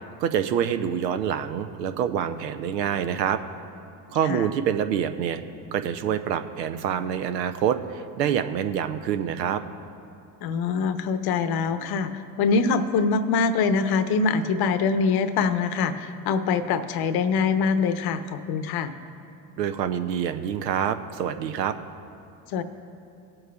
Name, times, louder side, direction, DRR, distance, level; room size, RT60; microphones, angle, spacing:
voice 1, 0.2-3.4 4.1-5.4 5.7-9.6 19.6-21.7, right 9 dB, 85° right, 10 dB, 0.7 m, -26 dB
voice 2, 10.4-18.9 22.5-22.6, left 5 dB, 50° left, 10 dB, 0.8 m, -24 dB
18.5 x 7.7 x 2.3 m, 2.6 s
hypercardioid pair, 70°, 48 cm